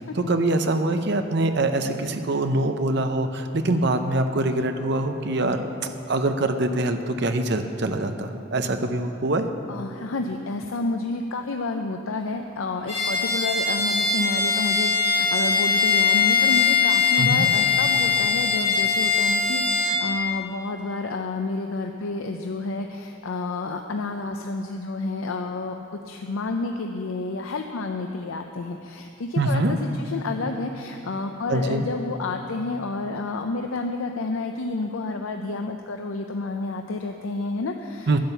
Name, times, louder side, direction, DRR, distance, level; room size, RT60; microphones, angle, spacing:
voice 1, 0.2-5.6 6.1-9.5 17.2-17.5 29.4-29.7 31.5-31.8 38.1-38.2, right 2 dB, 55° right, 7 dB, 0.7 m, -24 dB
voice 2, 9.7-38.2, left 3 dB, 85° left, 4 dB, 0.6 m, -30 dB
Bowed string instrument, 12.9-20.0, left 5 dB, 30° left, 2.0 m, -21 dB
10.5 x 9.0 x 6.8 m, 2.8 s
head